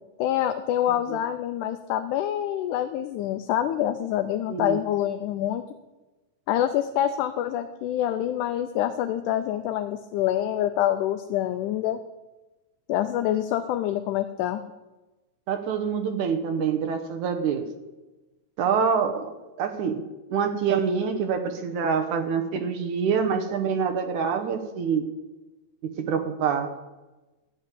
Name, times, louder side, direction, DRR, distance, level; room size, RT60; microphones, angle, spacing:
voice 1, 0.2-5.6 6.5-12.0 12.9-14.6, left 11 dB, 80° left, 8 dB, 2.0 m, -26 dB
voice 2, 15.5-17.7 18.6-19.3 19.6-20.0 20.3-25.1 26.1-26.7, right 6 dB, 70° right, 6 dB, 2.2 m, -26 dB
13.0 x 6.2 x 9.3 m, 1.1 s
omnidirectional pair, 3.8 m